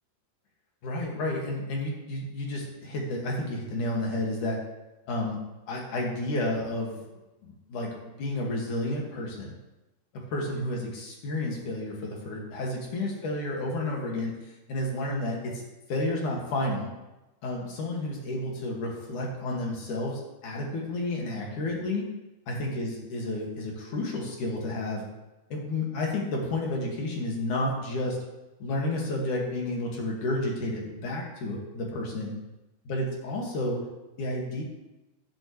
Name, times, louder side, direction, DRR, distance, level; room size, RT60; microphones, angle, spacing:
voice 1, 0.8-4.6 5.1-5.4 5.7-6.9 7.4-9.5 10.3-14.3 14.7-15.6 15.9-16.9 17.4-22.1 22.5-25.0 25.5-28.2 28.6-32.3 32.9-33.8 34.2-34.6, left 1 dB, 55° left, -2 dB, 3.1 m, -31 dB
14.0 x 12.0 x 3.2 m, 1.0 s
omnidirectional pair, 4.9 m